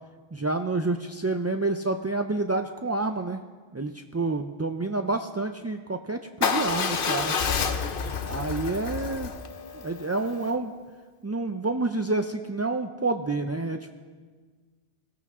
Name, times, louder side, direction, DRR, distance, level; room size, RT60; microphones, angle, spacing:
voice 1, 0.3-3.4 3.7-7.3 8.2-9.3 9.7-10.7 11.2-14.0, right 3 dB, 25° right, 5 dB, 0.3 m, -28 dB
Motorcycle / Engine starting / Idling, 6.4-10.5, left 6 dB, 60° left, 1.0 m, -29 dB
22.0 x 16.5 x 3.7 m, 1.5 s
omnidirectional pair, 1.1 m